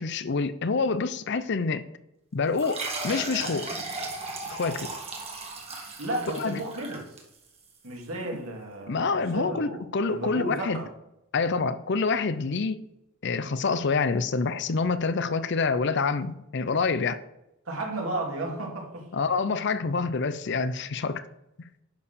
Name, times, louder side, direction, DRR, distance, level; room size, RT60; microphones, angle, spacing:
voice 1, 0.0-1.8 2.3-3.8 4.5-4.9 6.3-6.6 8.9-10.8 11.3-12.9 13.2-17.2 19.1-21.2, left 4 dB, 55° left, 0.6 m, -27 dB
sound 1, 2.6-7.7, right 3 dB, 30° right, 1.8 m, -36 dB
voice 2, 6.0-7.0 7.8-9.8 10.1-10.9 17.7-19.1, right 1 dB, 85° right, 2.7 m, -33 dB
10.5 x 4.7 x 6.8 m
head